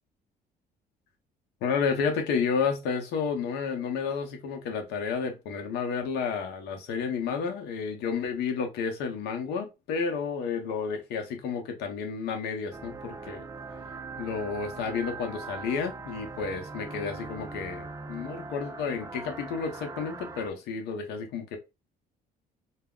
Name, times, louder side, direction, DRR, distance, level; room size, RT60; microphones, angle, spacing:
voice 1, 1.6-13.5 14.2-21.6, left 5 dB, 80° left, 0.7 m, -31 dB
sound 1, 12.7-20.5, right 3 dB, 20° right, 0.3 m, -41 dB
2.3 x 2.1 x 3.6 m
cardioid pair, 110°, 17 cm